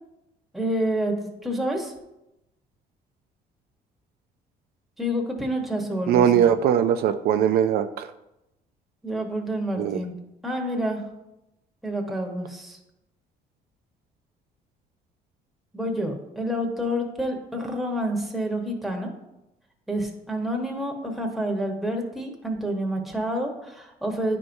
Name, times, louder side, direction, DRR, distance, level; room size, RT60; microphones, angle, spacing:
voice 1, 0.5-1.1 1.4-1.9 5.0-6.5 9.0-10.2 10.4-11.0 11.8-12.8 15.7-19.1 19.9-24.4, equal, ahead, 0 dB, 1.1 m, -28 dB
voice 2, 6.1-8.1 9.8-10.0, right 9 dB, 65° right, 8 dB, 0.4 m, -20 dB
9.7 x 4.5 x 2.6 m, 0.90 s
cardioid pair, 110°, 17 cm